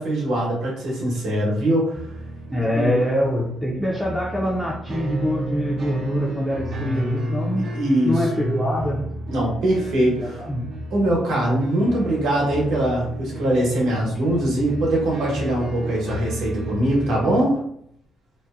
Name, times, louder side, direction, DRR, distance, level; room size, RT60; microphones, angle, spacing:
voice 1, 0.0-2.0 2.7-3.0 7.7-8.3 9.3-10.5 10.9-17.6, right 1 dB, 80° right, -3 dB, 1.1 m, -22 dB
sound 1, 1.9-17.5, right 1 dB, 60° right, 0.5 m, -32 dB
voice 2, 2.5-7.7 8.0-9.0 10.0-10.7, equal, 5° left, -5 dB, 0.5 m, -24 dB
2.7 x 2.1 x 2.4 m, 0.69 s
cardioid pair, 90°, 0 cm